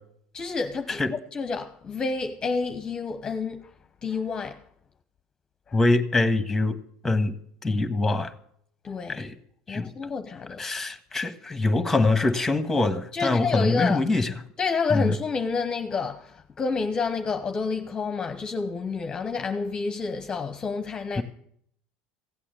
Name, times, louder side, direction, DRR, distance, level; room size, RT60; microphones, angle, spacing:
voice 1, 0.3-3.7 4.0-4.6 5.7-5.8 8.8-9.3 9.7-10.6 13.1-14.0 14.6-21.2, left 4 dB, 25° left, 0.9 m, -29 dB
voice 2, 5.7-6.8 7.0-7.3 7.6-8.3 9.1-9.3 9.7-9.9 10.6-14.3 14.9-15.1 21.1-21.2, left 2 dB, 10° left, 1.5 m, -24 dB
16.0 x 8.5 x 8.2 m
supercardioid pair, 115°, 3 cm